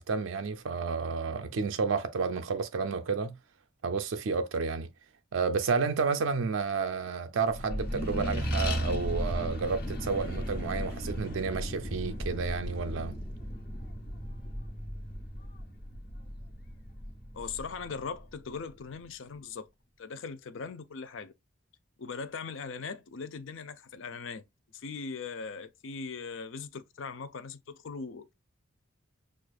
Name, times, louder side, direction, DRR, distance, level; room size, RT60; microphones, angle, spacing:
voice 1, 0.0-3.3 3.8-4.9 5.3-13.1, right 5 dB, 70° right, 0.4 m, -31 dB
Accelerating revving vroom, 7.5-18.4, equal, 50° left, 1.2 m, -35 dB
voice 2, 17.3-19.7 20.0-21.3 22.0-24.4 24.7-28.3, left 5 dB, 70° left, 0.5 m, -40 dB
6.2 x 2.4 x 2.3 m
head